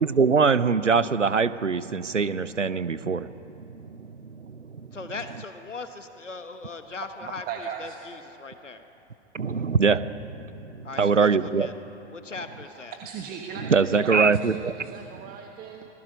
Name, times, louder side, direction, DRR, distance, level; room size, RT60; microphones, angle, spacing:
voice 1, 0.0-3.3 3.6-4.7 9.3-11.7 13.7-14.7, right 5 dB, 85° right, 17 dB, 0.8 m, -23 dB
voice 2, 4.9-7.4 7.8-8.8 10.8-11.7 12.1-12.9, left 3 dB, 85° left, 9 dB, 1.1 m, -39 dB
voice 3, 7.2-8.0 12.6-15.9, right 7 dB, 25° right, 3 dB, 1.3 m, -38 dB
26.0 x 19.0 x 5.3 m, 2.9 s
figure-of-eight pair, 105°, 36 cm